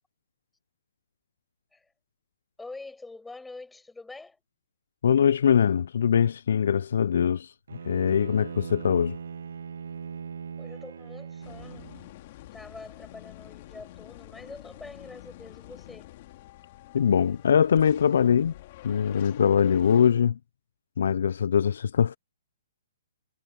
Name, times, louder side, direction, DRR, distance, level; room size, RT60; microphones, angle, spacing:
voice 1, 2.6-4.4 10.6-11.9 12.5-16.1, left 3 dB, 5° left, 5.5 m, -45 dB
voice 2, 5.0-7.5 7.8-9.2 16.9-18.5 18.8-20.4 21.0-22.2, left 8 dB, 65° left, 0.3 m, -22 dB
Bowed string instrument, 7.7-12.1, right 7 dB, 75° right, 0.5 m, -40 dB
sound 1, 11.4-20.1, left 15 dB, 35° left, 2.6 m, -48 dB
hypercardioid pair, 170°, 0 cm